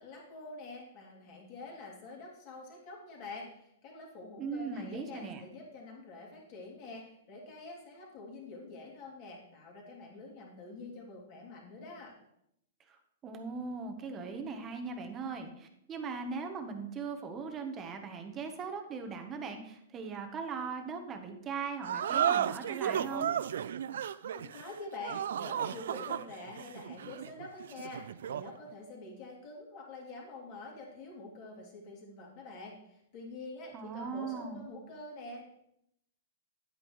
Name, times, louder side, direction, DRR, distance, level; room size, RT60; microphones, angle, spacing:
voice 1, 0.0-12.1 23.9-24.0 24.3-35.5, left 3 dB, 40° left, -2 dB, 2.9 m, -46 dB
voice 2, 4.4-5.4 12.9-23.3 33.7-34.7, right 5 dB, 20° right, 5 dB, 1.0 m, -39 dB
sound 1, 21.8-28.6, right 9 dB, 75° right, 0.3 m, -34 dB
9.7 x 8.9 x 3.1 m, 0.77 s
hypercardioid pair, 155°, 0 cm